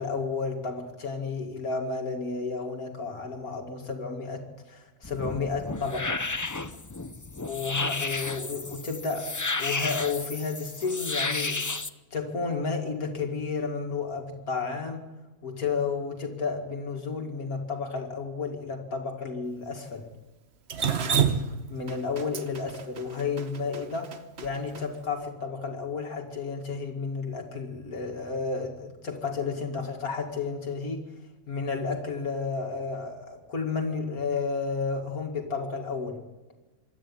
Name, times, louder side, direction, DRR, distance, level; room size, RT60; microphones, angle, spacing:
voice 1, 0.0-6.1 7.5-11.6 12.1-15.1 15.4-20.1 21.7-24.1 24.4-31.1 31.5-36.2, left 4 dB, 65° left, 3 dB, 2.7 m, -32 dB
sound 1, 5.0-11.9, left 3 dB, 25° left, 0.4 m, -32 dB
Drip, 20.7-24.8, right 7 dB, 45° right, 1.2 m, -28 dB
26.0 x 12.5 x 8.9 m, 1.2 s
omnidirectional pair, 1.6 m